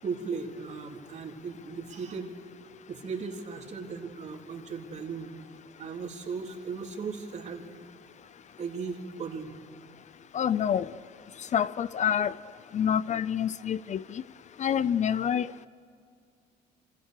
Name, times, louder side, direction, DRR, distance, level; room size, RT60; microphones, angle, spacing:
voice 1, 0.0-2.3 2.9-5.3 5.8-7.6 8.6-9.5, right 5 dB, 45° right, 2 dB, 3.6 m, -37 dB
voice 2, 10.3-10.9 11.5-12.3 12.7-14.2 14.6-15.5, left 9 dB, 45° left, 17 dB, 0.6 m, -27 dB
29.0 x 26.5 x 6.7 m, 2.2 s
cardioid pair, 110°, 17 cm